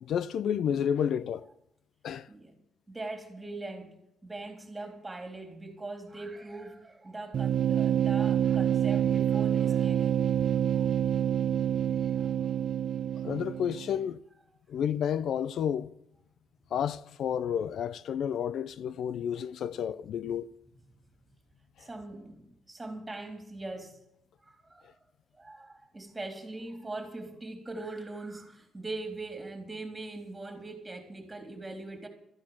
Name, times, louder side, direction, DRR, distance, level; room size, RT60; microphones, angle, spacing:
voice 1, 0.0-1.5 2.0-2.3 13.2-14.2 14.7-15.9 16.7-20.5 21.8-21.9, left 8 dB, 70° left, 0.5 m, -31 dB
voice 2, 2.9-10.3 10.7-10.9 12.0-12.2 21.8-24.0 24.4-25.0 25.3-32.1, right 2 dB, 15° right, 3.5 m, -41 dB
sound 1, 7.3-14.0, right 9 dB, 60° right, 0.6 m, -27 dB
14.0 x 9.6 x 7.3 m
cardioid pair, 90°, 0 cm